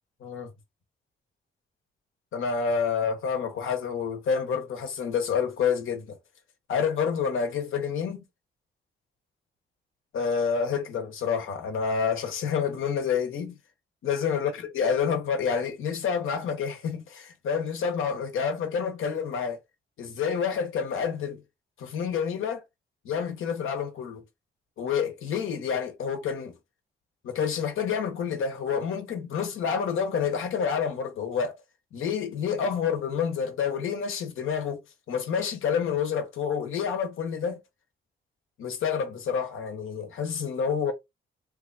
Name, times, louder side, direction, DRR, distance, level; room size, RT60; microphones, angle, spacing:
voice 1, 2.3-6.2 6.7-8.2 10.1-13.6 14.0-19.6 20.0-21.4 21.8-22.6 23.0-24.2 24.8-26.6 27.2-31.6 31.9-34.8 35.1-37.6 38.6-40.9, left 6 dB, 80° left, 1.0 m, -28 dB
3.1 x 2.3 x 3.9 m
cardioid pair, 90°, 21 cm